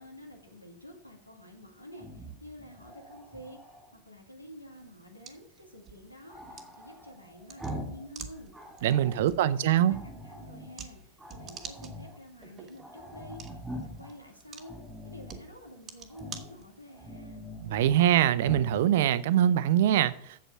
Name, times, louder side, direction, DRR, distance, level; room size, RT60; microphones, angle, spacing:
voice 1, 0.0-3.6 4.0-8.5 9.1-14.8 15.0-17.5, equal, 85° left, 2.2 m, -49 dB
Growling, 1.9-3.9 6.3-8.1 8.4-9.3 9.8-10.7 11.2-12.2 12.5-12.6 12.8-14.1 14.6-15.4 16.1-16.5 16.9-18.1 18.4-18.7, equal, 5° right, 3.1 m, -43 dB
sound 1, 4.7-17.1, right 6 dB, 25° right, 1.2 m, -50 dB
voice 2, 8.8-10.0 17.7-20.4, right 11 dB, 55° right, 0.5 m, -23 dB
8.1 x 7.5 x 5.8 m
figure-of-eight pair, 90°, 0 cm